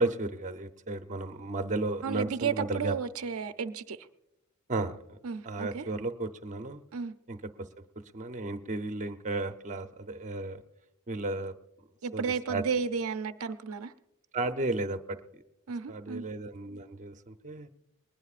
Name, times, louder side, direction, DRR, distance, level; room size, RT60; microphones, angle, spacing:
voice 1, 0.0-3.0 4.7-5.2 5.4-6.8 7.3-7.7 8.1-10.6 11.1-11.5 12.1-12.6 14.3-15.4 15.9-17.7, right 2 dB, 35° right, 8 dB, 0.7 m, -34 dB
voice 2, 2.0-4.1 5.2-5.9 6.9-7.1 12.0-13.9 15.7-16.3, right 6 dB, 70° right, 10 dB, 0.6 m, -33 dB
21.5 x 19.5 x 2.5 m, 0.89 s
head